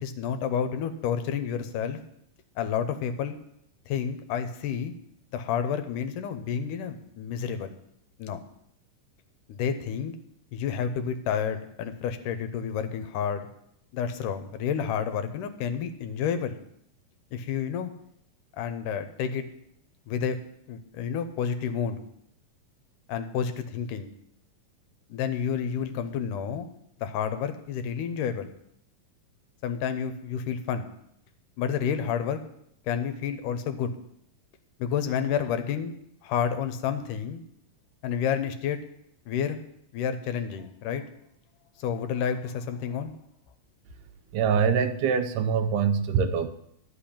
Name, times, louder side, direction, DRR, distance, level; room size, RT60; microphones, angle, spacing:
voice 1, 0.0-2.0 2.6-3.4 3.9-4.9 5.3-7.8 8.2-8.4 9.5-10.2 10.5-13.5 13.9-16.6 17.3-17.9 18.6-19.4 20.1-20.4 20.7-22.0 23.1-24.1 25.1-26.7 27.0-28.5 29.6-30.9 31.6-32.4 32.9-33.9 34.8-35.9 36.2-37.4 38.0-38.8 39.3-39.6 39.9-41.0 41.8-43.1, left 7 dB, 80° left, 2.3 m, -30 dB
voice 2, 44.3-46.5, right 6 dB, 80° right, 2.2 m, -24 dB
12.0 x 5.6 x 8.6 m
omnidirectional pair, 3.8 m